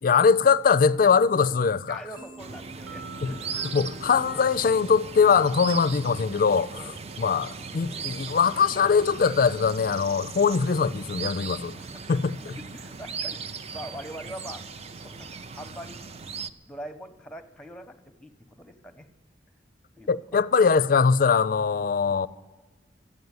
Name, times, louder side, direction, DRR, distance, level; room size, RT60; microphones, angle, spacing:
voice 1, 0.0-2.0 3.2-3.3 3.7-6.8 7.2-11.7 12.1-12.6 20.1-22.3, left 5 dB, 50° left, 0.4 m, -22 dB
voice 2, 1.9-3.7 6.7-7.0 7.6-8.0 11.8-11.9 12.7-13.4 13.7-14.6 15.0-16.2 16.7-19.1 20.0-20.2, equal, 5° left, 0.8 m, -43 dB
sound 1, 2.2-9.8, right 2 dB, 80° right, 1.9 m, -49 dB
sound 2, 2.4-16.5, right 5 dB, 35° right, 0.5 m, -38 dB
12.5 x 9.3 x 9.6 m
head